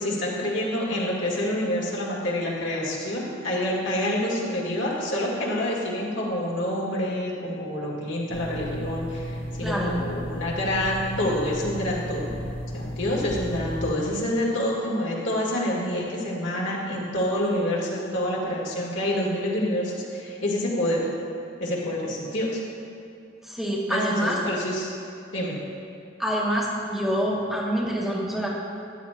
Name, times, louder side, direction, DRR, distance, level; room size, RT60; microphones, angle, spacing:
voice 1, 0.0-12.4 12.7-21.1 21.6-22.6 23.9-24.9 25.3-25.6, left 1 dB, 65° left, -4 dB, 2.0 m, -27 dB
sound 1, 8.3-14.0, equal, 30° left, 0.7 m, -34 dB
voice 2, 9.6-9.9 23.4-24.4 26.2-28.5, equal, ahead, -5 dB, 1.0 m, -26 dB
13.0 x 10.5 x 2.4 m, 2.5 s
head